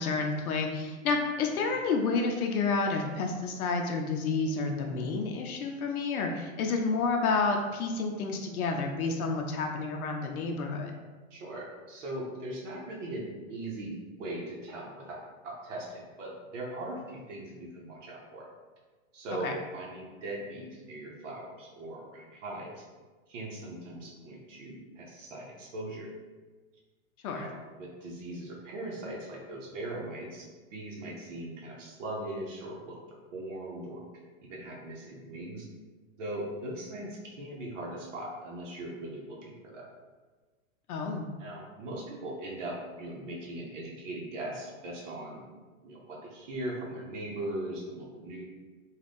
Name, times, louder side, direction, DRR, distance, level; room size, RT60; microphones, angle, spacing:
voice 1, 0.0-10.9 19.4-19.5 27.2-27.5 40.9-41.3, left 4 dB, 90° left, 2 dB, 0.5 m, -30 dB
voice 2, 11.3-13.9 14.2-15.2 15.4-18.5 19.1-22.8 23.3-26.1 27.3-33.0 33.3-34.0 34.4-35.7 36.2-39.9 41.4-45.4 45.8-48.4, right 1 dB, 60° right, -3 dB, 0.8 m, -40 dB
2.5 x 2.3 x 3.4 m, 1.3 s
hypercardioid pair, 150°, 42 cm